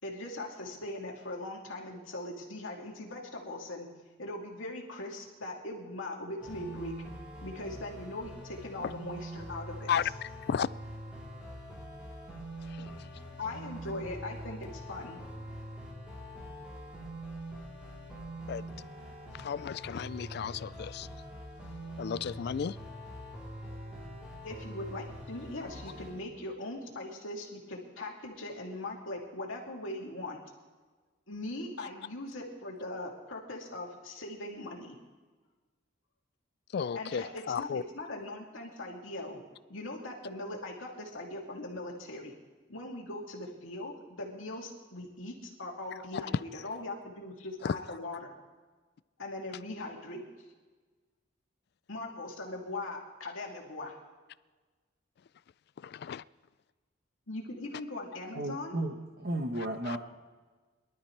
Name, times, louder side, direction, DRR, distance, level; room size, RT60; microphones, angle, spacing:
voice 1, 0.0-3.9 4.2-6.9 7.4-9.9 13.4-15.2 24.4-30.4 31.3-35.0 36.9-37.7 37.9-39.4 39.7-42.3 42.7-48.3 49.2-50.2 51.9-54.0 57.3-58.8, left 2 dB, 80° left, -1 dB, 2.7 m, -40 dB
sound 1, 6.4-26.2, equal, 5° right, 3.4 m, -44 dB
voice 2, 9.9-10.7 12.7-13.0 18.5-18.6 19.3-21.1 22.0-22.8 31.8-31.9 36.7-37.8 47.6-47.8 55.8-56.2 59.9-60.0, left 7 dB, 55° left, 19 dB, 0.3 m, -34 dB
voice 3, 58.4-60.0, right 1 dB, 50° right, 4 dB, 1.1 m, -34 dB
23.5 x 12.5 x 3.3 m, 1.3 s
head